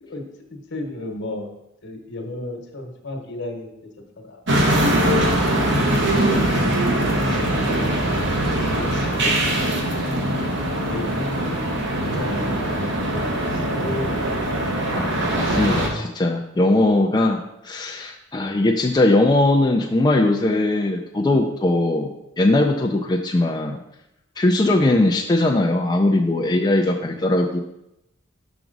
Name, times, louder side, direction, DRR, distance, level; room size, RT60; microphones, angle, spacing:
voice 1, 0.0-1.5 1.8-3.7 4.2-4.4 4.9-6.5 7.0-8.0 8.3-10.2 10.8-11.6 12.0-14.8, left 1 dB, 60° left, 3 dB, 1.2 m, -34 dB
sound 1, 4.5-15.9, right 1 dB, 60° right, 1.2 m, -22 dB
voice 2, 14.9-23.8 24.4-27.6, left 2 dB, 20° left, 1 dB, 0.4 m, -20 dB
6.0 x 6.0 x 3.9 m, 0.85 s
head